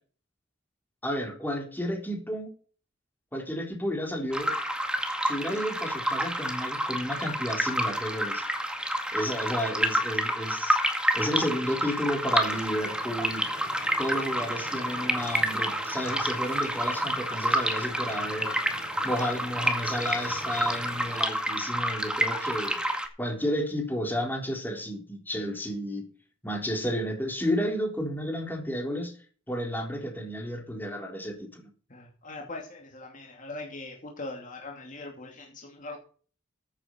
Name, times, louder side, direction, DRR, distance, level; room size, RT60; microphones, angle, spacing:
voice 1, 1.0-2.5 3.3-4.5 5.2-8.4 9.1-10.8 11.1-13.5 14.0-18.6 19.0-22.8 23.2-26.1 26.4-29.1 29.5-31.7, equal, 10° left, 2 dB, 3.8 m, -32 dB
sound 1, 4.3-23.1, right 1 dB, 5° right, 2.0 m, -29 dB
sound 2, 12.4-21.2, right 1 dB, 35° right, 7.9 m, -46 dB
voice 2, 31.9-36.0, left 2 dB, 45° left, 1 dB, 2.6 m, -41 dB
15.0 x 8.8 x 4.5 m, 0.41 s
head